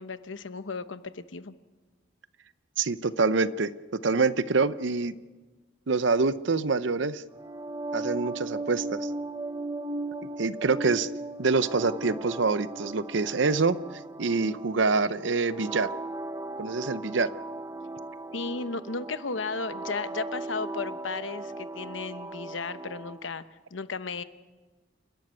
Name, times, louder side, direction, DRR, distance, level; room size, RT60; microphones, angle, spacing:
voice 1, 0.0-1.5 18.3-23.4 23.7-24.2, left 4 dB, 70° left, 12 dB, 0.9 m, -34 dB
voice 2, 2.8-3.7 4.0-5.1 5.9-7.2 7.9-9.1 10.4-11.1 11.4-13.8 14.2-15.9 16.6-17.3, right 4 dB, 65° right, 15 dB, 0.7 m, -25 dB
sound 1, 7.3-23.3, right 2 dB, 20° right, 0.6 m, -37 dB
28.5 x 11.5 x 9.6 m, 1.3 s
head